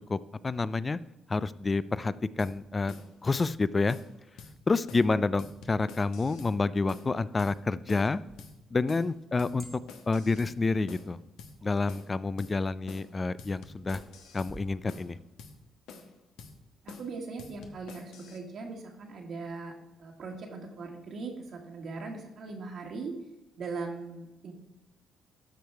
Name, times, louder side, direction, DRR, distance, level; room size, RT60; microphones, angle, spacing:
voice 1, 0.1-1.0 1.3-2.9 3.2-4.0 4.7-8.2 8.7-9.7 10.1-11.2 11.6-14.0 14.3-15.2, left 3 dB, 30° left, 17 dB, 0.3 m, -28 dB
sound 1, 2.4-2.5 2.9-3.1 3.4-3.5 3.9-4.1 4.4-4.5 4.9-5.1 5.4-6.5 6.9-7.1 7.4-7.5 7.9-8.1 8.4-8.5 8.9-9.1 9.4-10.5 10.9-11.1 11.4-11.5 11.9-12.1 12.4-12.5 12.9-13.1 13.4-14.5 14.9-15.1 15.4-15.5 15.9-16.1 16.4-16.5 16.9-17.1 17.4-18.4, left 5 dB, 85° left, 1.0 m, -48 dB
sound 2, 8.3-14.8, right 1 dB, 10° right, 1.4 m, -55 dB
voice 2, 16.8-23.2 23.6-24.5, right 4 dB, 60° right, 0 dB, 1.5 m, -40 dB
12.5 x 4.8 x 4.6 m, 0.94 s
cardioid pair, 90°, 0 cm